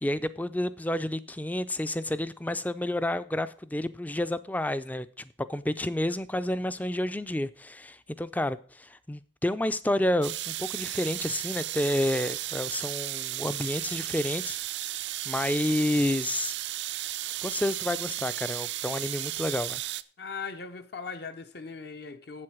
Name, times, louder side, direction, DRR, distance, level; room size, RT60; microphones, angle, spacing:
voice 1, 0.0-14.6 15.3-16.5 17.4-19.8, left 1 dB, 10° left, 0.4 m, -30 dB
sound 1, 10.2-20.0, right 15 dB, 65° right, 0.4 m, -34 dB
voice 2, 20.2-22.4, left 5 dB, 55° left, 0.7 m, -39 dB
7.9 x 7.6 x 6.1 m
head